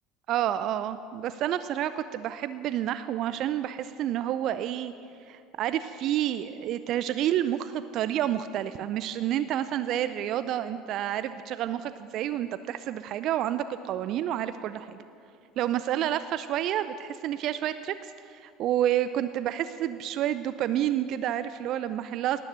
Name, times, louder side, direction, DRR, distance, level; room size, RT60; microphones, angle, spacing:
voice 1, 0.3-4.9 5.3-15.0 15.6-22.4, right 11 dB, 50° right, 12 dB, 0.5 m, -29 dB
18.5 x 10.0 x 7.9 m, 2.5 s
figure-of-eight pair, 65°, 0 cm